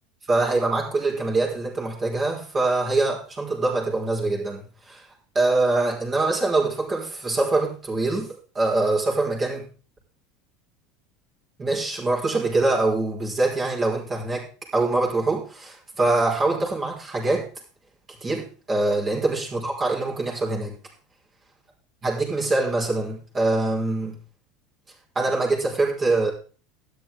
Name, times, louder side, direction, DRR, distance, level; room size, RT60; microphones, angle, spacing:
voice 1, 0.3-5.1 5.3-9.7 11.6-14.5 14.7-17.5 18.2-20.7 22.0-24.2 25.1-26.3, right 2 dB, 30° right, -2 dB, 4.7 m, -24 dB
12.5 x 10.5 x 3.6 m, 0.38 s
figure-of-eight pair, 75°, 0 cm